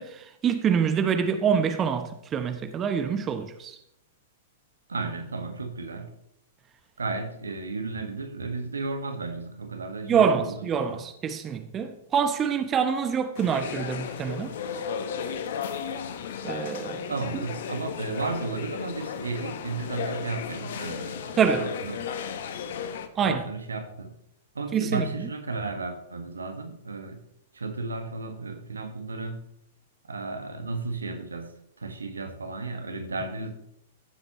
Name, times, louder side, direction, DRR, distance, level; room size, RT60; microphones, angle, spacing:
voice 1, 0.0-3.8 10.0-14.5 16.4-17.1 21.4-21.7 23.2-23.4 24.7-25.1, right 7 dB, 25° right, 0.9 m, -26 dB
voice 2, 4.9-6.1 7.0-11.1 17.1-22.0 23.2-24.1 24.5-27.2 27.5-29.4 30.1-33.5, right 3 dB, 80° right, 1.5 m, -34 dB
sound 1, 13.4-23.1, left 7 dB, 60° left, 1.0 m, -34 dB
15.0 x 7.9 x 3.1 m
figure-of-eight pair, 105°, 0 cm